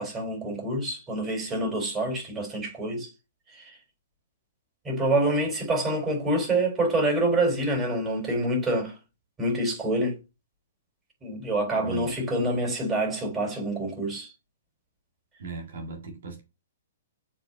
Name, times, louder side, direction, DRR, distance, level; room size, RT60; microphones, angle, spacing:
voice 1, 0.0-3.1 3.5-3.8 4.8-9.0 9.4-10.2 11.2-14.3, right 1 dB, 20° right, 4.0 m, -27 dB
voice 2, 11.8-12.2 15.4-16.4, right 4 dB, 65° right, 1.9 m, -38 dB
7.5 x 4.6 x 2.8 m
figure-of-eight pair, 115°, 0 cm